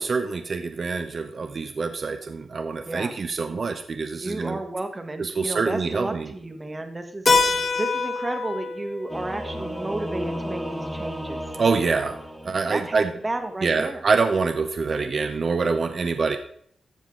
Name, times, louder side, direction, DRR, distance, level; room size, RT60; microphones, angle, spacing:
voice 1, 0.0-4.6 5.2-6.3 11.6-12.2 12.4-13.1 13.6-16.4, right 4 dB, 45° right, 7 dB, 0.8 m, -25 dB
voice 2, 4.1-7.3 7.8-11.4 12.7-14.0, right 2 dB, 20° right, 7 dB, 1.3 m, -32 dB
Keyboard (musical), 7.3-11.7, left 4 dB, 30° left, 1.5 m, -27 dB
Singing / Musical instrument, 9.1-13.2, equal, ahead, 1.6 m, -34 dB
14.0 x 7.2 x 3.8 m, 0.63 s
wide cardioid pair, 140°, 0 cm